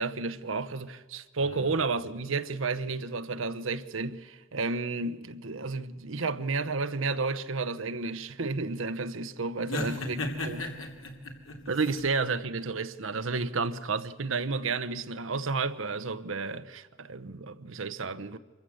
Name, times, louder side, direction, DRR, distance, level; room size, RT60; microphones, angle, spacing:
voice 1, 0.0-10.2 10.5-10.6 11.7-18.4, right 4 dB, 80° right, 0.9 m, -31 dB
voice 2, 1.4-1.8 9.7-11.7, left 2 dB, 85° left, 3.0 m, -35 dB
25.5 x 15.0 x 7.8 m
head